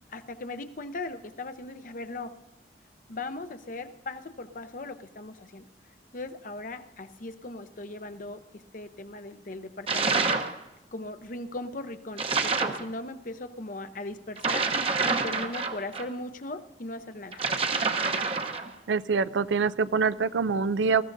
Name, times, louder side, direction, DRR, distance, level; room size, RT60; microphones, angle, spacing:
voice 1, 0.1-2.4 3.1-5.7 6.1-10.4 10.9-14.7 15.1-17.4, left 2 dB, 45° left, 9 dB, 0.7 m, -38 dB
sound 1, 9.9-10.6 12.2-12.8 14.4-16.1 17.3-18.7, right 4 dB, 30° right, 0.8 m, -27 dB
voice 2, 18.9-21.0, right 5 dB, 85° right, 15 dB, 0.4 m, -25 dB
20.0 x 14.5 x 2.6 m, 0.96 s
head